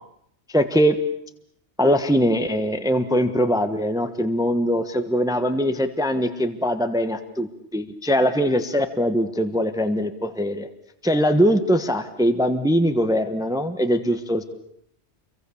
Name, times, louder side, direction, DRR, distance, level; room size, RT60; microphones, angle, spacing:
voice 1, 0.5-0.9 1.8-10.7 11.0-14.4, equal, 5° right, 9 dB, 1.2 m, -22 dB
28.5 x 23.5 x 7.1 m, 0.74 s
omnidirectional pair, 1.2 m